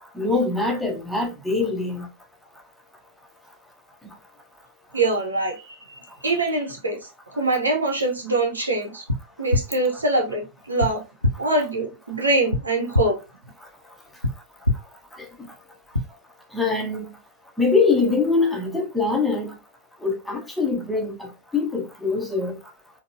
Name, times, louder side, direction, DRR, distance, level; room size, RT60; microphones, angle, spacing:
voice 1, 0.1-2.1 4.0-4.1 15.4-15.5 16.5-17.1 17.6-19.6 20.0-22.6, left 4 dB, 5° left, 0.8 m, -23 dB
voice 2, 4.9-5.6 5.9-7.0 7.3-9.0 9.4-11.0 11.4-13.2, right 2 dB, 75° right, 0.8 m, -24 dB
sound 1, 9.1-9.2 9.5-9.6 10.8-10.9 11.2-11.3 12.5-12.6 12.9-13.0 14.2-14.3 14.6-14.7 15.9-16.0, left 2 dB, 85° left, 0.5 m, -20 dB
3.8 x 2.2 x 2.5 m
figure-of-eight pair, 90°, 0 cm